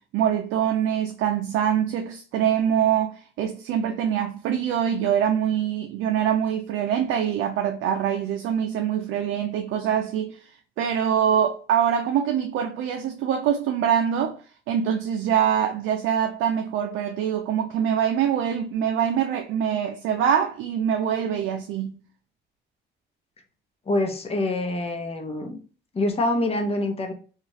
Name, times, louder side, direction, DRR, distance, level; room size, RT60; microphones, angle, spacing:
voice 1, 0.1-10.5 10.8-14.4 14.7-22.0, right 9 dB, 85° right, 0.4 m, -24 dB
voice 2, 23.9-25.6 25.9-27.1, left 2 dB, 30° left, 0.7 m, -25 dB
2.9 x 2.4 x 2.7 m
cardioid pair, 90°, 20 cm